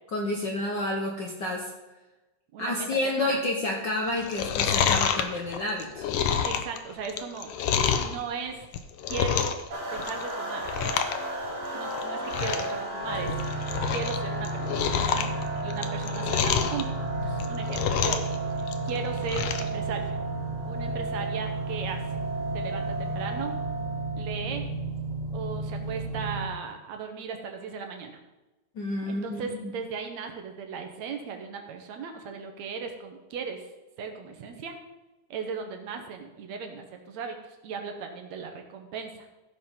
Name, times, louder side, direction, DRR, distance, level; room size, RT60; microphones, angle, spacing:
voice 1, 0.1-1.7 2.6-6.1 28.7-29.7, left 1 dB, 55° left, 0 dB, 1.2 m, -30 dB
voice 2, 2.5-3.4 6.4-7.5 8.0-8.7 9.1-9.6 9.9-10.7 11.7-13.4 13.9-15.3 15.6-16.9 17.2-18.2 18.9-20.2 20.7-22.2 22.5-23.6 24.2-24.6 25.3-28.2 29.1-33.6 34.0-34.8 35.3-39.3, right 5 dB, 70° right, 4 dB, 2.3 m, -37 dB
Chewing mastication, 4.2-8.2 8.6-9.7 9.9-10.3 10.6-11.2 11.4-11.5 12.0-12.1 12.3-12.7 13.1-14.2 14.4-16.8 17.3-18.3 18.6-19.7 20.1-20.2, left 8 dB, 70° left, 1.5 m, -27 dB
sound 1, 9.7-24.3, right 2 dB, 45° right, 3.1 m, -35 dB
sound 2, 13.0-26.4, right 2 dB, 35° left, 1.6 m, -33 dB
15.0 x 5.2 x 5.7 m, 1.1 s
omnidirectional pair, 3.4 m